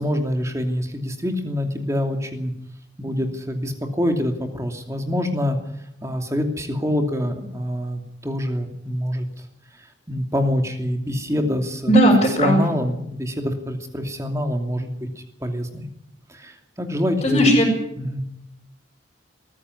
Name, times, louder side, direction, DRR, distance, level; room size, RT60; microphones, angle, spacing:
voice 1, 0.0-2.5 3.0-5.6 6.0-9.3 10.1-11.9 12.3-15.1 15.4-15.9 16.3-17.6 18.0-18.2, left 1 dB, 15° right, 4 dB, 2.7 m, -25 dB
voice 2, 11.9-12.6 17.2-17.7, equal, 30° left, -6 dB, 6.1 m, -16 dB
20.5 x 15.0 x 9.8 m, 0.79 s
head